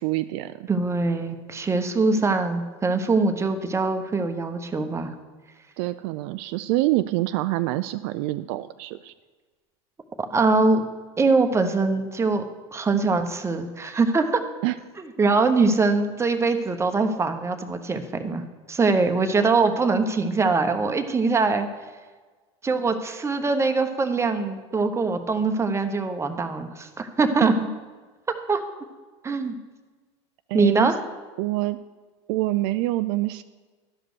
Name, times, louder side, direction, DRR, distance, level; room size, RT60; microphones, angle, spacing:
voice 1, 0.0-0.7 5.8-9.1 14.6-14.7 27.4-27.5 30.5-30.9 31.4-31.8 32.3-33.4, right 17 dB, 65° right, 12 dB, 0.4 m, -26 dB
voice 2, 0.7-5.1 10.2-10.8 11.2-12.4 12.7-14.4 15.2-18.4 18.7-21.7 22.6-27.6 28.3-28.6 29.2-29.5 30.5-31.0, right 3 dB, 20° right, 7 dB, 1.0 m, -22 dB
12.5 x 5.0 x 6.2 m, 1.4 s
hypercardioid pair, 95°, 15 cm